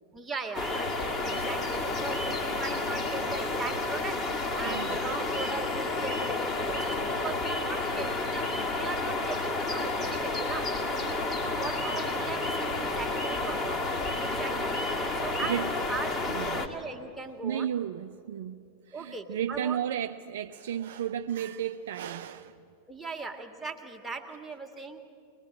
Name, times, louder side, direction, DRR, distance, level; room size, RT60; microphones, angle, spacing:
voice 1, 0.1-14.7 15.2-17.7 18.9-19.8 22.9-25.0, right 3 dB, 10° right, 1.9 m, -39 dB
sound 1, 0.5-16.7, left 2 dB, 25° left, 2.1 m, -30 dB
voice 2, 4.7-5.0 14.1-14.6 15.0-15.7 16.3-16.7 17.4-22.6, right 9 dB, 60° right, 0.5 m, -34 dB
23.0 x 20.0 x 8.6 m
figure-of-eight pair, 90°, 0 cm